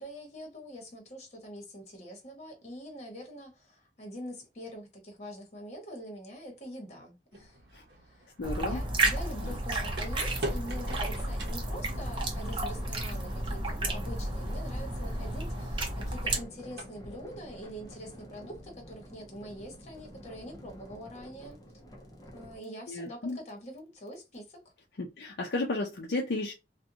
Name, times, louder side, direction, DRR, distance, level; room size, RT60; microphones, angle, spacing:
voice 1, 0.0-7.6 8.0-8.3 8.6-21.6 22.3-24.6, equal, 40° left, 1.1 m, -44 dB
sound 1, 7.3-18.2, right 1 dB, 70° right, 0.7 m, -46 dB
voice 2, 8.4-8.8 9.4-9.5 22.9-23.4 25.0-26.5, left 2 dB, 65° left, 0.5 m, -33 dB
sound 2, 8.4-16.4, right 1 dB, 30° right, 0.7 m, -32 dB
sound 3, 10.8-22.6, equal, 20° left, 0.7 m, -50 dB
2.6 x 2.2 x 2.6 m
head